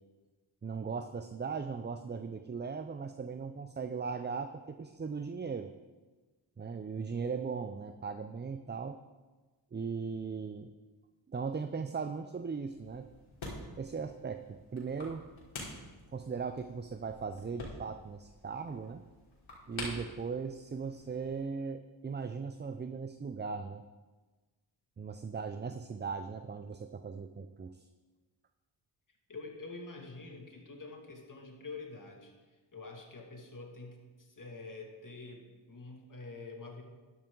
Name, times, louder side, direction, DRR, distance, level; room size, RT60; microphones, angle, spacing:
voice 1, 0.6-5.7 6.6-9.0 9.7-10.7 11.3-13.1 13.8-15.3 16.1-19.0 19.7-23.8 25.0-27.9, right 5 dB, 25° right, 9 dB, 0.5 m, -38 dB
sound 1, 12.7-21.4, left 2 dB, 80° left, 3.7 m, -48 dB
voice 2, 29.3-32.3 32.7-36.8, left 3 dB, 40° left, 1 dB, 2.5 m, -46 dB
13.0 x 9.6 x 3.9 m, 1.3 s
cardioid pair, 65°, 47 cm